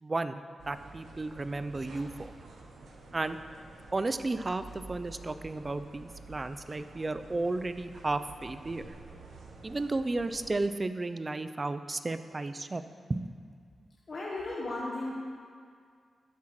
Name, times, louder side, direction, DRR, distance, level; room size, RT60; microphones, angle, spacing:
voice 1, 0.0-2.3 3.1-3.4 3.9-8.9 9.6-12.8 13.1-13.3, right 2 dB, 30° right, 11 dB, 0.4 m, -33 dB
sound 1, 0.6-10.7, right 3 dB, 85° right, 0.8 m, -50 dB
voice 2, 14.1-15.1, left 2 dB, 55° left, -5 dB, 1.1 m, -35 dB
12.0 x 7.5 x 3.1 m, 2.1 s
cardioid pair, 80°, 0 cm